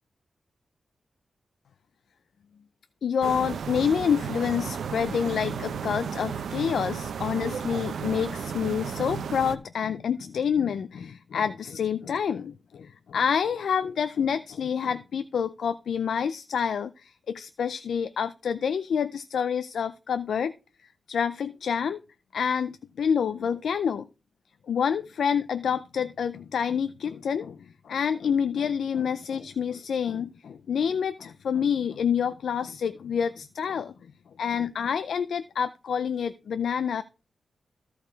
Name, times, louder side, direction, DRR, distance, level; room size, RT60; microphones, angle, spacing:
voice 1, 3.0-20.5 21.1-22.0 22.3-24.1 24.7-33.9 34.4-37.0, left 7 dB, 75° left, 12 dB, 0.4 m, -28 dB
sound 1, 3.2-9.6, right 7 dB, 85° right, 0.6 m, -33 dB
13.5 x 4.7 x 4.6 m, 0.32 s
wide cardioid pair, 175°, 0 cm